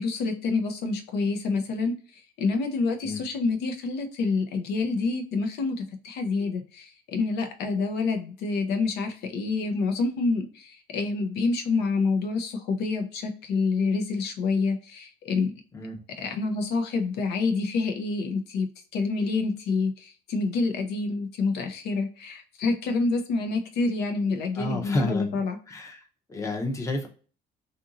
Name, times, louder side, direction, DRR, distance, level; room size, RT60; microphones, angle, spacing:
voice 1, 0.0-15.5 16.2-18.7 18.9-25.6, left 4 dB, 75° left, 5 dB, 0.6 m, -27 dB
voice 2, 24.5-25.3 25.7-26.0 26.3-27.1, left 2 dB, 20° left, 2 dB, 0.6 m, -30 dB
2.8 x 2.5 x 2.4 m, 0.39 s
cardioid pair, 110°, 17 cm